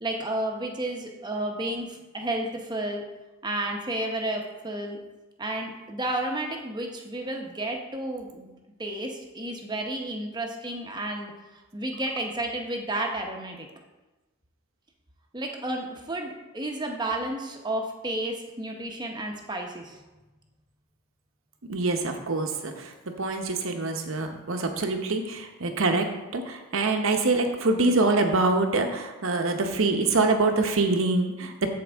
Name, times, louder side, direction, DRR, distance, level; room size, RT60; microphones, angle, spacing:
voice 1, 0.0-3.0 3.4-5.0 5.4-8.5 8.8-11.3 11.7-13.7 15.3-20.0, right 1 dB, 20° right, 2 dB, 0.9 m, -31 dB
voice 2, 21.7-22.9 23.2-26.1 26.3-31.7, right 3 dB, 65° right, 5 dB, 0.9 m, -25 dB
13.5 x 4.7 x 3.5 m, 1.1 s
head